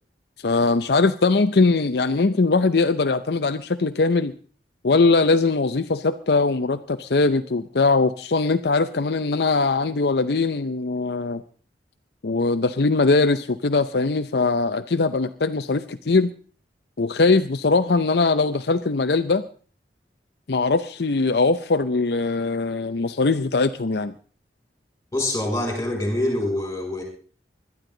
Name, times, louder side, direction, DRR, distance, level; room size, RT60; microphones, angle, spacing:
voice 1, 0.4-4.3 4.8-11.4 12.2-16.3 17.0-19.4 20.5-24.1, left 3 dB, 65° left, 9 dB, 0.6 m, -21 dB
voice 2, 25.1-27.0, left 1 dB, 15° left, 1 dB, 6.1 m, -25 dB
21.0 x 12.5 x 3.9 m, 0.41 s
head